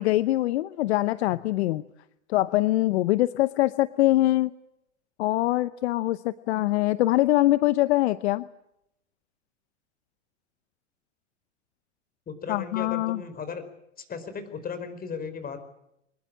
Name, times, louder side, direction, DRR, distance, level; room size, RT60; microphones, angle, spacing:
voice 1, 0.0-1.8 2.3-4.5 5.2-8.4 12.5-13.2, left 16 dB, 60° left, 16 dB, 0.9 m, -23 dB
voice 2, 12.3-13.6 14.0-15.6, left 6 dB, 25° left, 10 dB, 4.8 m, -36 dB
24.0 x 21.0 x 8.8 m, 0.82 s
hypercardioid pair, 100°, 36 cm